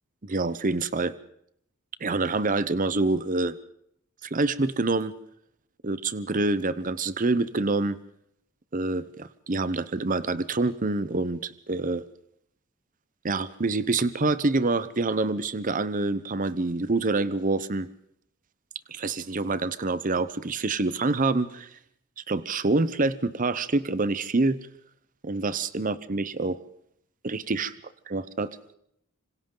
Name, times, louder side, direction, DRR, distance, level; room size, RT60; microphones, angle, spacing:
voice 1, 0.2-1.1 2.0-3.6 4.2-5.1 5.8-8.0 8.7-12.0 13.2-17.9 18.9-21.7 22.2-24.6 25.2-26.6 27.2-27.7 28.1-28.6, right 3 dB, 40° right, 15 dB, 0.8 m, -26 dB
26.5 x 26.0 x 3.9 m, 0.72 s
head